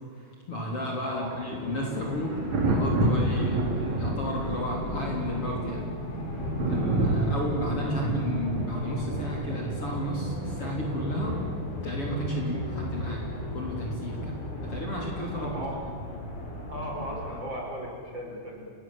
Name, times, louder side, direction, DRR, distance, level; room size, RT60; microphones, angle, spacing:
voice 1, 0.1-6.0 6.7-15.6, equal, 35° left, -1 dB, 4.1 m, -33 dB
voice 2, 1.0-1.4 15.3-15.8 16.7-18.7, equal, 30° right, -1 dB, 6.0 m, -36 dB
Thunder, 1.0-14.7 16.3-16.5, right 2 dB, 45° right, 4.3 m, -31 dB
sound 1, 1.4-17.4, left 1 dB, 55° left, 5.5 m, -36 dB
30.0 x 18.5 x 9.0 m, 2.3 s
omnidirectional pair, 4.5 m